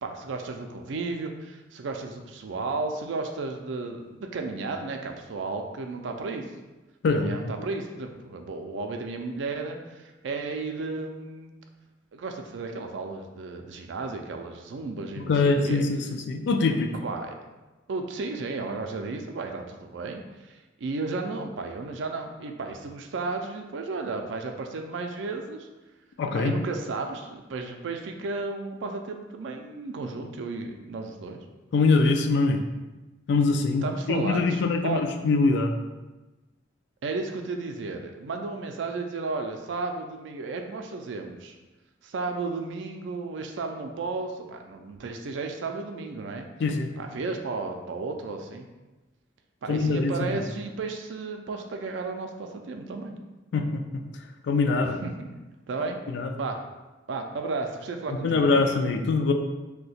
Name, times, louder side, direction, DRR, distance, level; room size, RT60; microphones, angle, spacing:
voice 1, 0.0-6.5 7.0-11.6 12.1-15.8 16.9-17.3 17.9-25.7 26.3-31.4 33.8-35.0 37.0-41.6 42.0-46.5 47.0-48.7 49.6-53.2 54.8-55.3 55.7-56.0 56.4-56.6 57.1-58.6, right 3 dB, 70° right, 4 dB, 0.4 m, -33 dB
voice 2, 7.0-7.5 15.3-16.9 26.2-26.6 31.7-32.6 33.3-35.7 46.6-46.9 49.7-50.5 53.5-54.0 54.4-55.0 56.1-56.3 58.1-59.3, left 3 dB, 65° left, 4 dB, 0.3 m, -23 dB
2.7 x 2.2 x 4.1 m, 1.1 s
head